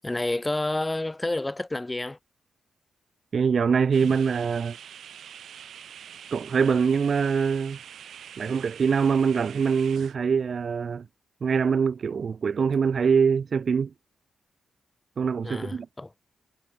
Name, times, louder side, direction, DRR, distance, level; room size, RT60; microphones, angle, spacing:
voice 1, 0.0-2.2 15.4-16.1, left 2 dB, 15° left, 1.9 m, -29 dB
voice 2, 3.3-4.8 6.3-7.8 8.4-11.1 11.4-13.9 15.2-15.9, right 6 dB, 55° right, 0.5 m, -24 dB
sound 1, 3.9-10.2, right 9 dB, 80° right, 3.5 m, -45 dB
cardioid pair, 90°, 0 cm